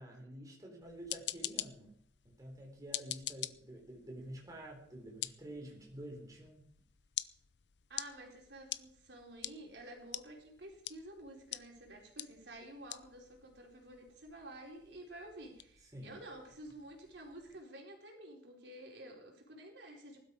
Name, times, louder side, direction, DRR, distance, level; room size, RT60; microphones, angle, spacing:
voice 1, 0.0-2.0 2.2-6.7 15.9-16.2, right 1 dB, 20° right, 0 dB, 3.7 m, -49 dB
sound 1, 0.8-17.6, left 14 dB, 70° left, 0.6 m, -47 dB
voice 2, 7.9-20.2, right 1 dB, 70° right, 0 dB, 4.6 m, -51 dB
19.5 x 12.5 x 4.9 m, 0.67 s
head